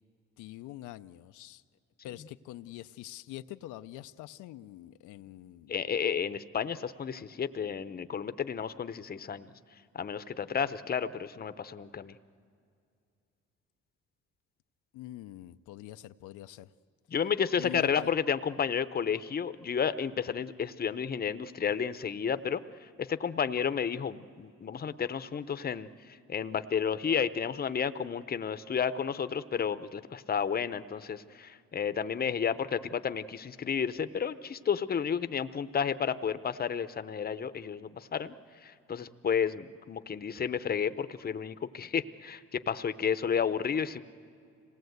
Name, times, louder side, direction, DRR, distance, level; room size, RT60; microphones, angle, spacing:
voice 1, 0.4-1.6 2.0-5.7 14.9-16.7 17.6-18.1, left 14 dB, 90° left, 10 dB, 0.5 m, -44 dB
voice 2, 5.7-9.5 9.9-12.1 17.1-22.6 23.0-25.9 26.3-38.3 38.6-44.0, left 7 dB, 30° left, 12 dB, 0.7 m, -31 dB
26.5 x 18.5 x 8.0 m, 2.4 s
cardioid pair, 90°, 29 cm